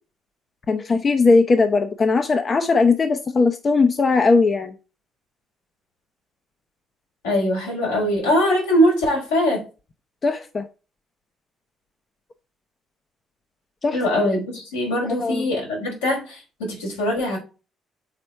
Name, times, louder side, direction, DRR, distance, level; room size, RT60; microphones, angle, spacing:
voice 1, 0.7-4.8 10.2-10.7 13.8-14.1 15.2-15.5, left 4 dB, 40° left, 0.8 m, -19 dB
voice 2, 7.2-9.6 13.9-17.4, equal, 90° left, 3.6 m, -22 dB
6.8 x 4.3 x 4.6 m
hypercardioid pair, 50°, 0 cm